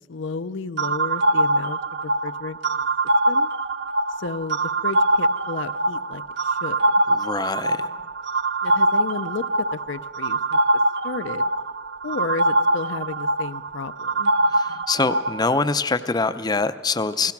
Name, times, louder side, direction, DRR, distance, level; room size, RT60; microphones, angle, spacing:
voice 1, 0.1-2.9 3.3-3.5 4.2-6.9 8.6-10.6 11.0-11.4 12.0-14.3, left 4 dB, 75° left, 12 dB, 0.6 m, -33 dB
sound 1, 0.8-15.5, right 2 dB, 60° right, 0.5 m, -23 dB
voice 2, 7.1-7.9 14.4-17.3, left 3 dB, 20° left, 11 dB, 0.5 m, -24 dB
28.5 x 17.5 x 6.0 m, 1.5 s
head